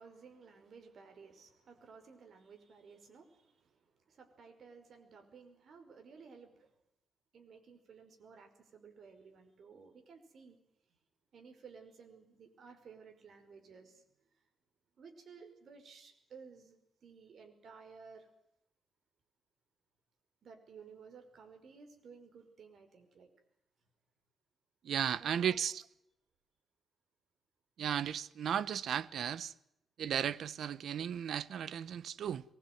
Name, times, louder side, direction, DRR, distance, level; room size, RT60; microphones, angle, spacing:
voice 1, 0.0-6.8 7.3-10.6 10.9-11.0 11.3-14.0 15.0-18.3 20.4-23.3 25.2-25.6, right 5 dB, 60° right, 5.3 m, -56 dB
voice 2, 24.8-25.8 27.8-29.5 30.0-32.4, right 9 dB, 75° right, 1.0 m, -35 dB
23.0 x 20.5 x 9.4 m
wide cardioid pair, 125°, 0 cm